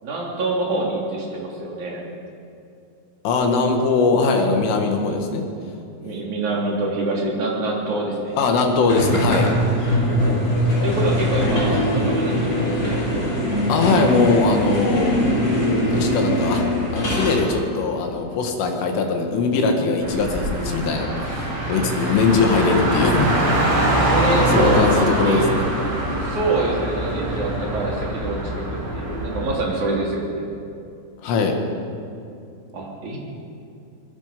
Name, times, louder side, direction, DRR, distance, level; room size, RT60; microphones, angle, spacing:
voice 1, 0.0-2.0 6.0-8.3 10.8-13.0 24.0-25.5 26.2-30.5 32.7-33.2, right 2 dB, 40° right, -3 dB, 4.5 m, -25 dB
voice 2, 3.2-5.5 8.4-9.5 13.7-15.2 15.9-16.7 16.9-23.3 24.5-25.6 31.2-31.6, left 4 dB, 70° left, 3 dB, 4.4 m, -20 dB
sound 1, 8.9-17.5, equal, 20° left, 5.6 m, -21 dB
Car, 20.0-29.5, right 1 dB, 75° right, 9.3 m, -23 dB
24.5 x 21.5 x 5.3 m, 2.6 s
omnidirectional pair, 6.0 m